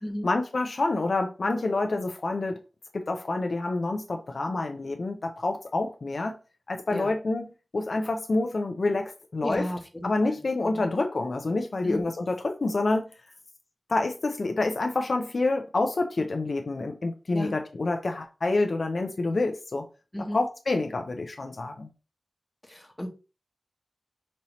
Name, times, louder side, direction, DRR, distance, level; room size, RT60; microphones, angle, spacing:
voice 1, 0.2-2.6 2.9-6.4 6.7-7.4 7.7-9.6 10.0-13.1 13.9-19.8 20.3-21.9, left 2 dB, 65° left, 0.5 m, -27 dB
voice 2, 9.4-10.8 11.8-12.1 17.3-17.5 20.1-20.4 22.6-23.1, equal, 15° left, 1.0 m, -34 dB
5.3 x 2.7 x 3.0 m
wide cardioid pair, 60°, 0 cm